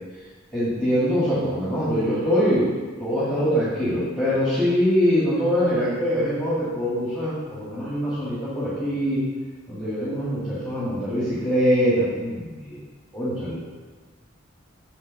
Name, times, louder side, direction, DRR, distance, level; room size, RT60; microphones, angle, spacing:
voice 1, 0.5-2.7 3.0-9.2 9.7-12.8 13.1-13.5, equal, 5° left, -10 dB, 1.9 m, -23 dB
8.2 x 4.0 x 6.3 m, 1.4 s
head